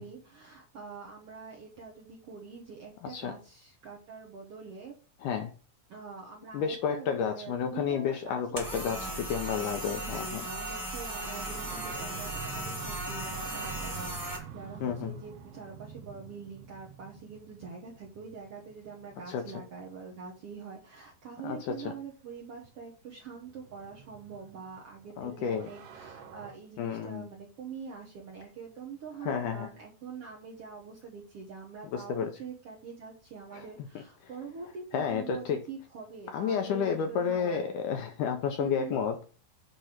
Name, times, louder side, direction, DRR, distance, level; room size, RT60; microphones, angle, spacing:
voice 1, 0.0-4.9 5.9-37.7 38.6-39.0, right 5 dB, 65° right, -2 dB, 1.5 m, -45 dB
voice 2, 3.0-3.3 5.2-5.5 6.5-10.4 14.8-15.1 19.3-19.5 21.4-21.9 25.2-25.7 26.8-27.3 29.3-29.7 31.9-32.3 33.5-33.7 34.9-35.6 36.3-39.3, left 7 dB, 75° left, 5 dB, 2.0 m, -31 dB
sound 1, 8.5-14.4, right 1 dB, 10° right, 1.1 m, -37 dB
sound 2, 10.1-20.4 21.7-21.8 22.8-26.5, right 6 dB, 80° right, 1.4 m, -48 dB
8.0 x 3.4 x 5.8 m, 0.37 s
omnidirectional pair, 4.2 m